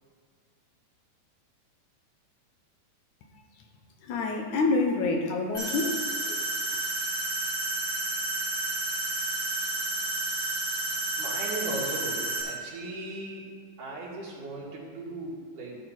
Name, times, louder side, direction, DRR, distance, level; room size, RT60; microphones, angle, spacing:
voice 1, 4.0-6.0 6.3-6.4, left 3 dB, 70° left, 2 dB, 2.5 m, -27 dB
sound 1, 5.5-12.4, right 2 dB, 45° left, 4.2 m, -31 dB
voice 2, 11.2-13.5 13.8-15.8, right 2 dB, 75° right, -4 dB, 3.6 m, -37 dB
13.5 x 8.3 x 4.2 m, 2.2 s
omnidirectional pair, 3.6 m